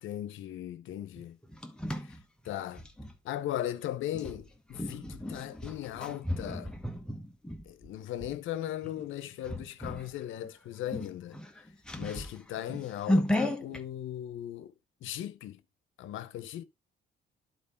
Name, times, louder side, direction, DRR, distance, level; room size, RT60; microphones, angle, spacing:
voice 1, 0.0-1.4 2.0-2.2 2.4-2.8 3.2-6.7 7.6-11.4 11.9-14.7 15.0-15.6 16.0-16.6, left 12 dB, 85° left, 0.8 m, -38 dB
sound 1, 1.2-3.1 4.1-8.3 8.8-9.1 9.4-10.1 10.4-10.5 10.8-13.8, left 1 dB, 5° left, 1.1 m, -34 dB
11.0 x 4.6 x 3.4 m
cardioid pair, 90°, 20 cm